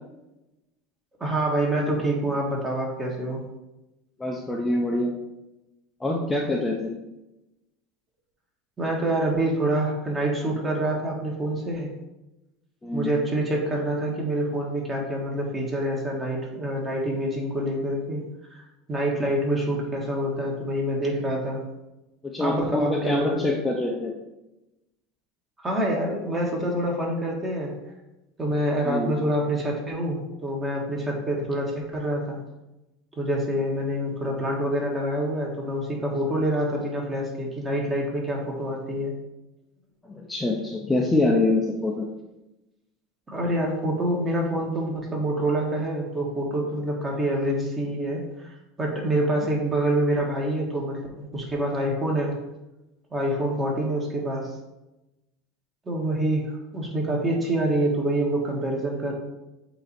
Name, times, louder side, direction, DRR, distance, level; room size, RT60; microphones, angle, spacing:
voice 1, 1.2-3.4 8.8-11.9 12.9-18.2 18.5-18.6 18.9-21.6 22.4-23.4 25.6-27.7 28.4-32.4 33.2-39.1 43.3-48.5 48.8-52.3 53.1-54.5 55.9-59.1, right 1 dB, 20° right, -1 dB, 1.7 m, -26 dB
voice 2, 4.2-5.1 6.0-6.9 12.8-13.1 22.2-24.1 28.8-29.1 40.1-42.1, left 2 dB, 10° left, -1 dB, 0.7 m, -25 dB
7.7 x 2.9 x 4.3 m, 0.98 s
supercardioid pair, 120°, 0 cm